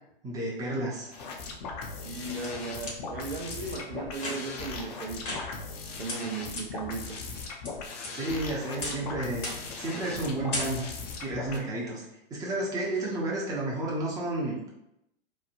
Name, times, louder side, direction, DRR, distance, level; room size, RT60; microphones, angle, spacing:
voice 1, 0.2-1.1 8.1-9.5 9.7-10.8 11.2-12.0 12.3-14.7, right 2 dB, 10° right, -4 dB, 0.6 m, -31 dB
sound 1, 1.1-11.6, left 4 dB, 40° left, 0.5 m, -39 dB
sound 2, 2.0-3.0 3.5-3.6 4.1-4.7 5.2-5.8 6.1-6.2 6.6-6.7 7.1-7.7 8.0-8.4 8.8-9.1 9.4-9.8 10.1-10.2 10.5-11.1, left 2 dB, 60° left, 1.0 m, -36 dB
voice 2, 2.0-5.4 6.0-7.2, right 3 dB, 70° right, 1 dB, 0.6 m, -37 dB
3.1 x 2.1 x 2.4 m, 0.82 s
figure-of-eight pair, 100°, 30 cm